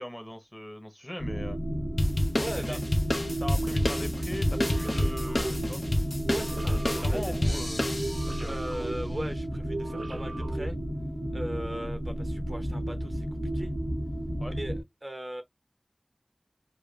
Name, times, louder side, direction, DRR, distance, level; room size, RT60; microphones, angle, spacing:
voice 1, 0.0-1.6 2.6-2.8 3.4-5.8 6.8-7.9 8.3-8.6 14.4-14.6, equal, 15° left, 1.0 m, -39 dB
sound 1, 1.2-14.8, equal, 80° left, 1.2 m, -33 dB
sound 2, 2.0-8.5, left 1 dB, 65° left, 0.8 m, -29 dB
voice 2, 2.4-2.8 3.5-3.6 6.3-7.6 8.5-10.8 11.3-13.3 13.5-13.7 14.5-15.4, right 1 dB, 35° right, 0.7 m, -38 dB
sound 3, 4.4-11.3, right 2 dB, 75° right, 0.6 m, -39 dB
5.0 x 2.2 x 2.3 m
wide cardioid pair, 40°, 0 cm